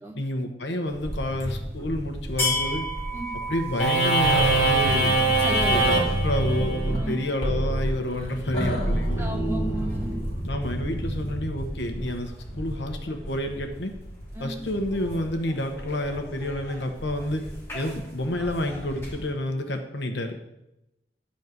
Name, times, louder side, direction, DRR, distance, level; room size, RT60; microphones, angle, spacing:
voice 1, 0.1-2.9 3.5-5.2 5.7-9.3 10.4-13.9 14.4-17.5 17.7-20.4, left 1 dB, 75° left, 5 dB, 1.1 m, -29 dB
sound 1, 0.9-19.3, equal, 15° left, 2.4 m, -35 dB
sound 2, 3.8-10.6, right 2 dB, 35° left, 2.5 m, -24 dB
voice 2, 5.3-6.2 6.9-7.2 9.2-10.1 14.3-14.6, right 1 dB, 15° right, 2 dB, 1.0 m, -33 dB
11.0 x 4.2 x 6.7 m, 0.89 s
head